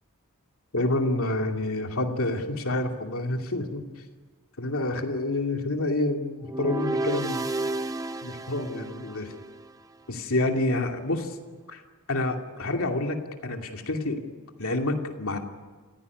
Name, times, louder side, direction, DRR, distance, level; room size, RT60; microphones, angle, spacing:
voice 1, 0.7-3.8 4.6-7.4 8.2-9.3 10.1-11.4 11.7-11.8 12.1-14.2 14.6-15.4, left 2 dB, 65° left, 3 dB, 2.7 m, -28 dB
sound 1, 6.4-9.7, right 2 dB, 15° right, 0.8 m, -32 dB
28.0 x 16.0 x 9.7 m, 1.5 s
head